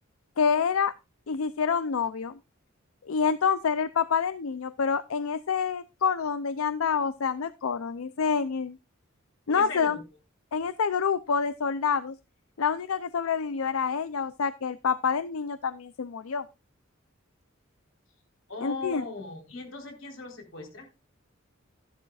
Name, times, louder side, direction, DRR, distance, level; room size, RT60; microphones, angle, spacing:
voice 1, 0.4-0.9 1.3-2.3 3.1-8.8 9.5-10.0 10.5-12.2 12.6-16.4 18.6-19.0, left 6 dB, 85° left, 14 dB, 0.5 m, -27 dB
voice 2, 9.5-10.0 18.5-20.9, left 3 dB, 65° left, 2 dB, 4.0 m, -38 dB
13.5 x 11.0 x 2.4 m, 0.26 s
head